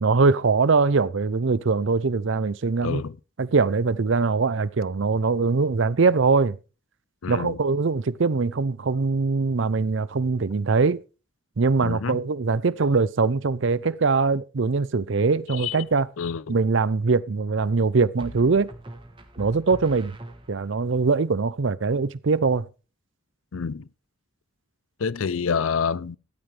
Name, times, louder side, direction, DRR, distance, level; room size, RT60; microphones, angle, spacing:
voice 1, 0.0-3.0 3.4-6.6 7.3-11.0 11.6-16.1 16.5-18.7 19.4-20.2 20.5-22.7, right 4 dB, 60° right, 0.5 m, -22 dB
voice 2, 2.8-3.1 7.2-7.6 11.8-12.2 15.5-15.8 16.2-16.6 23.5-23.9 25.0-26.2, left 6 dB, 75° left, 0.5 m, -27 dB
sound 1, 15.5-16.1 18.2-20.9, right 1 dB, 25° right, 1.4 m, -42 dB
13.5 x 12.5 x 3.3 m
head